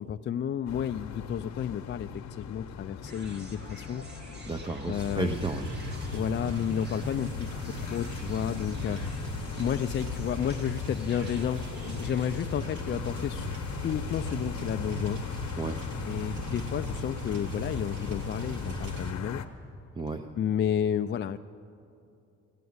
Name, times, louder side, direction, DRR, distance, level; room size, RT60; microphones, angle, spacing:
voice 1, 0.0-4.0 4.9-5.3 6.1-9.0 9.6-13.5 13.8-15.2 16.1-19.5 20.4-21.4, left 9 dB, 40° left, 9 dB, 0.4 m, -31 dB
sound 1, 0.7-19.5, left 8 dB, 65° left, 0.9 m, -41 dB
sound 2, 3.0-12.3, left 1 dB, 35° right, 2.3 m, -46 dB
voice 2, 4.4-5.7 15.6-15.8 20.0-20.2, right 3 dB, 15° right, 6 dB, 0.6 m, -32 dB
sound 3, 4.9-19.1, left 1 dB, 70° right, 2.3 m, -37 dB
17.0 x 8.3 x 9.5 m, 2.6 s
cardioid pair, 90°, 30 cm